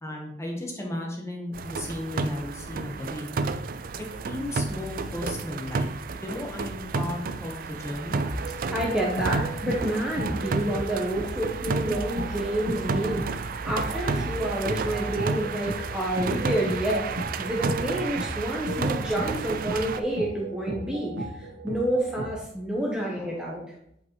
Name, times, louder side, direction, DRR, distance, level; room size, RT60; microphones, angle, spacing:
voice 1, 0.0-3.3 4.3-5.9 6.2-8.2 23.0-23.5, left 1 dB, 15° left, 0 dB, 1.1 m, -35 dB
sound 1, 1.5-20.0, right 4 dB, 50° right, 0.4 m, -31 dB
sound 2, 8.2-22.3, right 1 dB, 90° right, 1.1 m, -36 dB
voice 2, 8.7-17.1 17.4-23.6, right 1 dB, 5° right, -4 dB, 0.9 m, -29 dB
8.0 x 5.1 x 3.1 m, 0.75 s
head